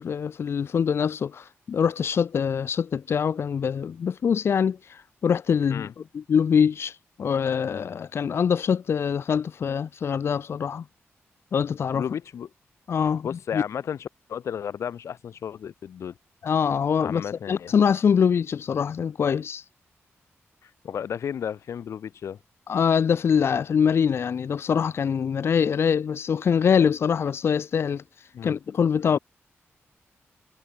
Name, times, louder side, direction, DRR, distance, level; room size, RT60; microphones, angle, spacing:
voice 1, 0.0-5.9 6.1-10.8 11.5-12.0 12.9-13.6 16.4-19.6 22.7-29.2, left 7 dB, 60° left, 1.5 m, -24 dB
voice 2, 11.9-12.5 13.2-16.1 17.0-17.7 20.6-22.4 28.3-28.6, left 8 dB, 90° left, 2.3 m, -33 dB
wide cardioid pair, 160°, 5 cm